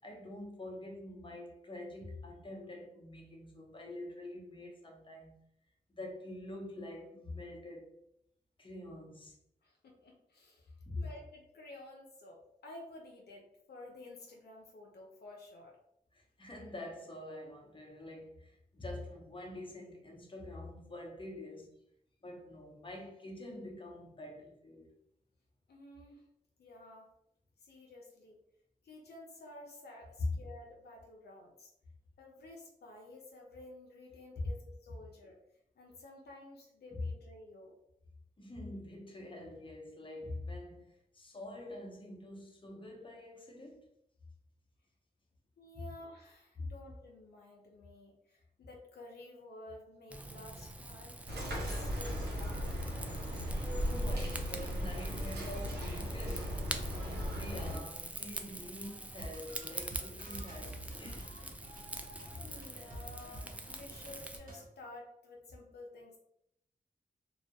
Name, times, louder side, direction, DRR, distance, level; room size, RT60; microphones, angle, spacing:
voice 1, 0.0-5.4 5.9-8.0 8.6-9.4 10.8-11.1 16.1-21.7 22.2-24.9 30.2-30.3 36.9-37.1 38.4-43.9 46.6-46.7 53.8-61.6, left 1 dB, 30° left, 0.7 m, -45 dB
voice 2, 9.6-15.8 25.7-26.2 26.6-27.1 27.6-28.4 28.8-31.7 32.2-35.4 35.8-37.7 45.6-53.3 62.4-66.2, left 2 dB, 75° left, 0.5 m, -52 dB
Rain / Fire, 50.1-64.4, right 1 dB, 10° right, 0.3 m, -45 dB
sound 1, 51.3-57.8, equal, 90° right, 0.7 m, -37 dB
sound 2, 59.1-64.7, right 1 dB, 55° right, 0.7 m, -49 dB
2.2 x 2.0 x 2.7 m
cardioid pair, 40°, 17 cm